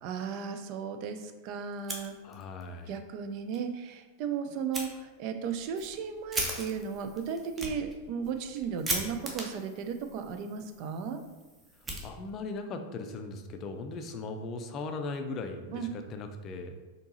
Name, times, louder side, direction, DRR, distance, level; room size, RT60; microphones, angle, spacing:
voice 1, 0.0-2.1 2.9-11.2 15.7-15.9, right 6 dB, 45° right, 7 dB, 0.4 m, -35 dB
Fire, 1.7-2.7 3.0-3.1 3.5-3.6 4.7-4.9 5.4-12.6, right 1 dB, 15° right, 0.7 m, -39 dB
voice 2, 2.2-2.9 12.0-16.8, left 3 dB, 35° left, 6 dB, 0.4 m, -38 dB
4.4 x 2.8 x 2.8 m, 1.2 s
figure-of-eight pair, 90°, 0 cm